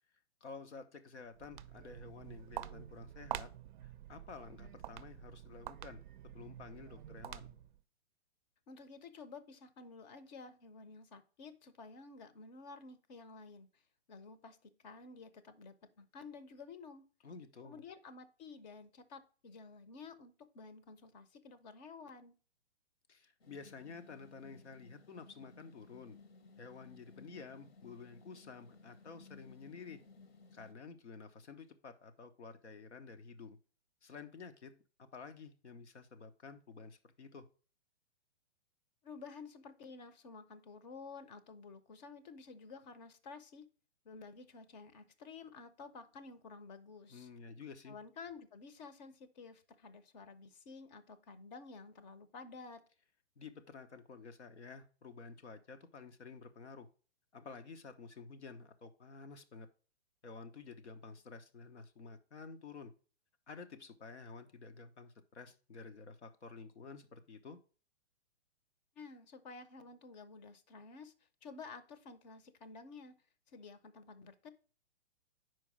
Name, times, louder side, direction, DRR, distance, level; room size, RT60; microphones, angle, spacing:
voice 1, 0.4-3.5 3.8-7.5 17.2-17.8 23.1-26.2 26.6-30.0 30.5-33.6 34.0-37.5 47.1-48.0 53.4-56.9 57.3-59.7 60.2-62.9 63.5-67.6, left 4 dB, 85° left, 9 dB, 1.1 m, -51 dB
Walk footsteps, 1.2-7.8, right 11 dB, 45° right, 0.4 m, -47 dB
voice 2, 8.7-13.8 14.1-17.1 17.6-22.3 39.0-43.6 44.0-47.3 47.9-52.8 69.0-71.1 71.4-73.2 73.5-74.5, left 4 dB, 40° left, 12 dB, 0.8 m, -52 dB
sound 1, 23.4-30.7, left 3 dB, 60° left, 1.2 m, -59 dB
5.2 x 4.7 x 6.1 m, 0.38 s
hypercardioid pair, 135°, 33 cm